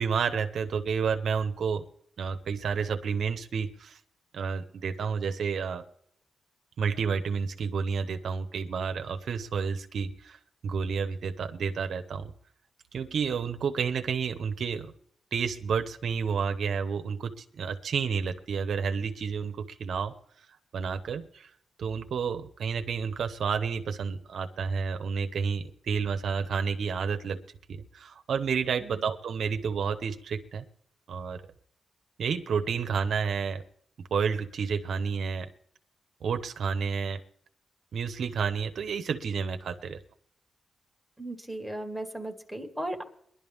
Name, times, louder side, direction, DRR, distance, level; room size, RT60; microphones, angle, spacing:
voice 1, 0.0-1.8 2.2-4.0 4.3-5.8 6.8-10.4 10.6-12.3 12.9-14.9 15.3-20.1 20.7-21.5 21.8-27.4 27.7-30.6 31.1-31.4 32.2-33.6 34.1-35.5 36.2-37.2 37.9-40.0, right 6 dB, 70° right, 7 dB, 0.9 m, -30 dB
voice 2, 41.2-43.0, right 1 dB, ahead, 2 dB, 1.9 m, -36 dB
21.5 x 11.5 x 3.6 m, 0.67 s
cardioid pair, 110°, 0 cm